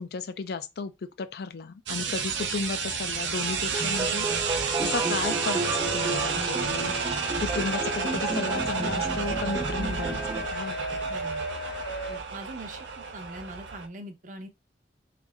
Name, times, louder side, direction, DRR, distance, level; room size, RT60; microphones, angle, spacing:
voice 1, 0.0-4.3 4.8-6.9 7.4-11.0, left 4 dB, 60° left, 0.4 m, -34 dB
sound 1, 1.9-13.9, right 5 dB, 85° right, 0.6 m, -31 dB
sound 2, 3.7-10.5, right 3 dB, 20° right, 0.4 m, -32 dB
sound 3, 5.6-12.2, right 1 dB, 85° left, 0.9 m, -35 dB
voice 2, 11.1-11.5 12.1-14.5, right 1 dB, 45° right, 0.7 m, -42 dB
3.3 x 2.6 x 3.4 m
head